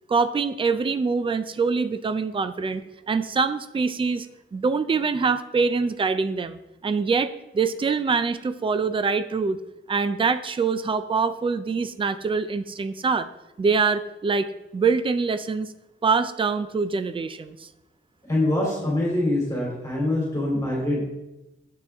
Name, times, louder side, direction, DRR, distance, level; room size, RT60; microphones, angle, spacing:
voice 1, 0.1-2.8 3.1-4.3 4.5-9.6 9.9-13.3 13.6-14.5 14.7-15.7 16.0-17.7, right 4 dB, 25° right, 11 dB, 0.4 m, -24 dB
voice 2, 18.3-21.0, left 1 dB, 15° left, -5 dB, 3.0 m, -24 dB
9.9 x 8.1 x 3.5 m, 0.94 s
wide cardioid pair, 175°, 20 cm